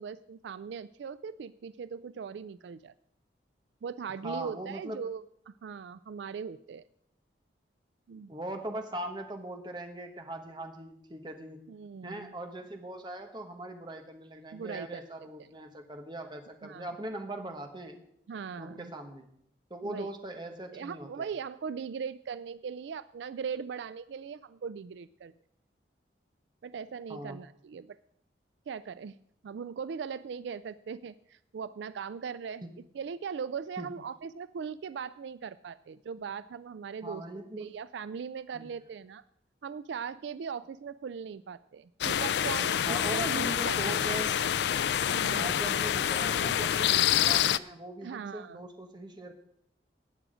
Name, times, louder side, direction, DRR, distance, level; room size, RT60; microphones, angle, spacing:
voice 1, 0.0-2.9 3.8-6.8 8.1-8.3 11.7-12.3 14.5-15.3 16.6-16.9 18.3-18.9 19.8-20.1 20.7-25.3 26.6-28.0 28.7-29.2 29.4-32.6 32.9-37.2 37.6-39.2 39.6-44.2 45.1-45.6 48.0-48.6, right 6 dB, 75° right, 15 dB, 0.3 m, -39 dB
voice 2, 4.2-5.1 8.3-11.6 12.0-18.0 18.6-19.3 19.7-21.3 27.1-27.4 32.6-32.7 33.8-33.9 37.0-37.7 38.5-38.7 42.9-44.4 45.4-49.3, right 1 dB, 25° right, 5 dB, 1.3 m, -40 dB
sound 1, 42.0-47.6, left 10 dB, 70° left, 0.3 m, -27 dB
17.5 x 6.2 x 5.0 m, 0.70 s
head